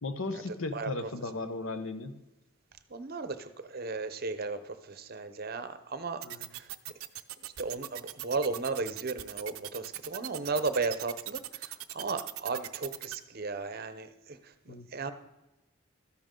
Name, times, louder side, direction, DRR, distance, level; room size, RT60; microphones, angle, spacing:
voice 1, 0.0-2.1 6.2-6.5 14.7-14.9, left 3 dB, 70° left, 10 dB, 0.9 m, -36 dB
voice 2, 0.7-1.1 2.9-4.6 4.8-6.2 6.5-6.6 7.6-11.4 11.7-14.4 14.7-15.1, right 3 dB, 45° right, 11 dB, 0.7 m, -35 dB
sound 1, 6.2-13.2, right 14 dB, 90° right, 0.6 m, -39 dB
13.5 x 10.5 x 3.8 m, 1.0 s
head